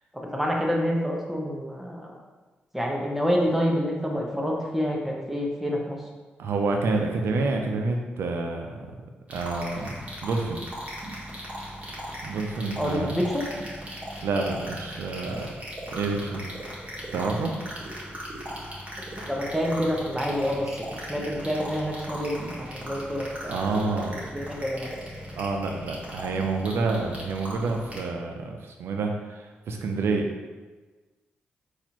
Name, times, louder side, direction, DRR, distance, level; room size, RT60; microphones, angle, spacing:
voice 1, 0.1-2.1 2.7-6.0 12.8-13.4 19.1-20.7 21.1-23.8 24.1-24.9, equal, 5° right, -1 dB, 0.9 m, -27 dB
voice 2, 6.4-8.7 9.3-10.7 12.2-13.1 14.2-15.5 15.9-16.5 17.1-17.5 23.4-24.1 25.4-30.2, right 3 dB, 75° right, 3 dB, 0.5 m, -28 dB
sound 1, 9.3-28.0, equal, 35° right, 1.2 m, -38 dB
4.0 x 2.5 x 2.9 m, 1.3 s
supercardioid pair, 50°, 4 cm